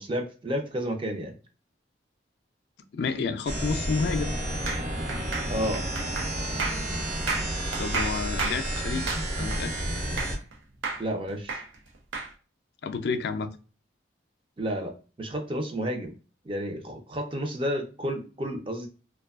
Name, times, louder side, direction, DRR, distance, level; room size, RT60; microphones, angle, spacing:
voice 1, 0.0-1.4 5.5-5.8 11.0-11.6 14.6-14.9 15.2-16.1 16.4-18.9, equal, 30° right, 0.4 m, -31 dB
voice 2, 2.9-4.3 7.8-9.7 12.8-13.6, left 4 dB, 60° left, 0.3 m, -30 dB
sound 1, 3.4-10.4, right 1 dB, 45° right, 0.8 m, -31 dB
sound 2, 4.7-10.5 10.8-12.3, right 4 dB, 90° right, 0.7 m, -33 dB
2.6 x 2.2 x 2.3 m
head